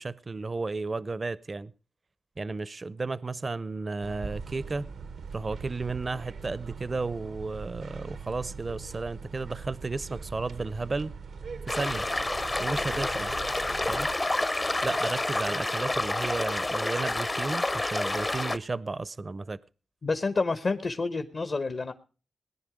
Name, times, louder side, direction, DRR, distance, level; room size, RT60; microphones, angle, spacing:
voice 1, 0.0-1.7 2.4-4.8 5.3-11.1 11.7-12.1 12.6-13.3 13.9-14.1 14.8-19.6, right 3 dB, 45° right, 0.6 m, -33 dB
sound 1, 4.0-14.2, right 5 dB, 80° right, 0.8 m, -41 dB
sound 2, 11.7-18.6, left 2 dB, 30° left, 0.7 m, -29 dB
voice 2, 20.0-21.9, left 3 dB, 55° left, 1.1 m, -29 dB
18.5 x 10.0 x 4.9 m
cardioid pair, 50°, 0 cm